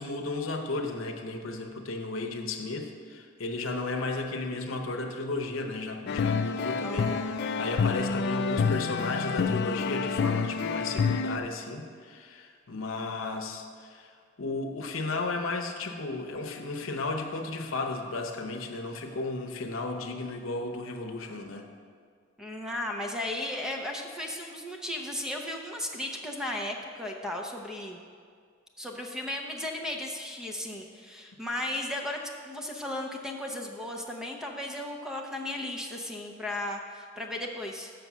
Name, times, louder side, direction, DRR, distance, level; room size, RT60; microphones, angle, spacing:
voice 1, 0.0-7.2 7.6-14.1 14.4-21.7, left 3 dB, 80° left, 5 dB, 0.8 m, -34 dB
sound 1, 6.1-11.4, left 5 dB, 55° left, 0.3 m, -28 dB
voice 2, 6.8-8.2 22.4-28.0 28.8-32.2 32.4-37.9, left 1 dB, 5° right, 1 dB, 0.6 m, -35 dB
6.8 x 6.4 x 6.1 m, 2.1 s
head